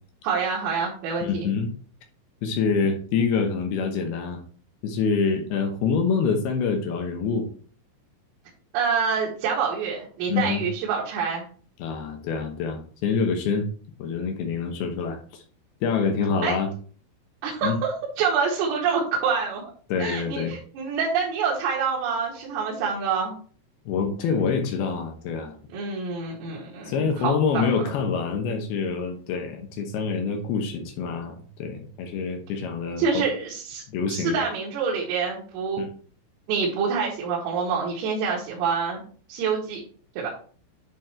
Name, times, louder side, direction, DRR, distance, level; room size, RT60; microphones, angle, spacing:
voice 1, 0.2-1.5 8.7-11.4 16.4-16.6 17.4-19.6 20.0-23.4 25.7-27.7 33.0-33.8 34.1-35.8 36.5-39.0 39.3-39.8 40.2-40.3, right 5 dB, 80° right, -4 dB, 4.4 m, -26 dB
voice 2, 1.2-1.7 2.4-4.4 4.8-7.5 10.3-10.6 11.8-13.7 14.0-15.4 15.8-16.7 17.6-17.8 19.9-20.5 23.9-25.6 26.9-33.2 33.9-34.4 35.8-35.9, left 5 dB, 80° left, 3 dB, 2.2 m, -26 dB
10.5 x 3.8 x 4.4 m, 0.43 s
omnidirectional pair, 5.9 m